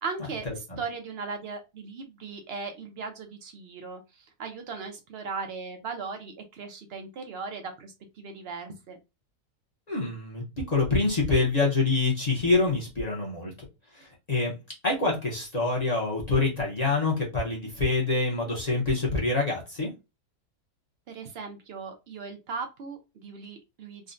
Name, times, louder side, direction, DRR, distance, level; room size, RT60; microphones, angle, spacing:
voice 1, 0.0-9.0 21.1-24.1, right 4 dB, 70° right, 5 dB, 0.6 m, -38 dB
voice 2, 9.9-13.5 14.0-14.5 14.8-19.9, left 3 dB, 35° left, -4 dB, 0.7 m, -26 dB
3.6 x 2.1 x 2.5 m, 0.25 s
omnidirectional pair, 1.6 m